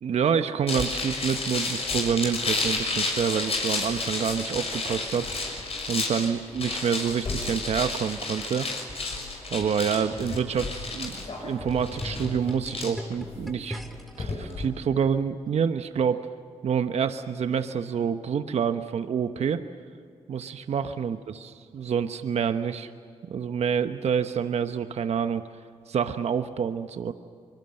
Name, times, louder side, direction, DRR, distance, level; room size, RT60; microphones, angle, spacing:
voice 1, 0.0-5.5 5.9-8.7 9.5-11.1 11.4-13.8 14.2-16.3 16.6-19.6 20.3-22.9 23.2-25.4 25.9-27.1, right 7 dB, 65° right, 9 dB, 1.0 m, -27 dB
sound 1, 0.7-14.6, left 3 dB, 60° left, 6.3 m, -31 dB
sound 2, 10.1-14.2 15.0-15.1, equal, ahead, 2.2 m, -40 dB
24.5 x 23.0 x 7.8 m, 2.2 s
supercardioid pair, 50°, 12 cm